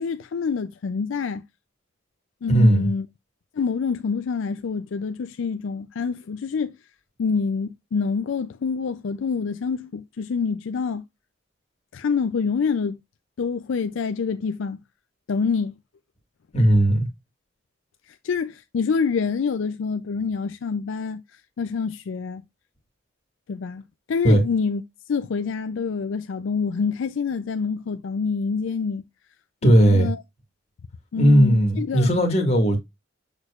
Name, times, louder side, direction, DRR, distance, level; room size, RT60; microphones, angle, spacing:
voice 1, 0.0-1.4 2.4-3.1 3.5-6.7 7.2-11.0 11.9-13.0 13.4-14.8 15.3-15.8 18.1-22.4 23.5-23.8 24.1-24.8 25.1-29.0 29.6-30.2 31.1-32.1, left 5 dB, 70° left, 0.4 m, -26 dB
voice 2, 2.5-2.9 16.5-17.1 24.2-24.4 29.6-30.1 31.2-32.8, right 1 dB, 30° left, 1.8 m, -17 dB
6.5 x 6.3 x 2.4 m
head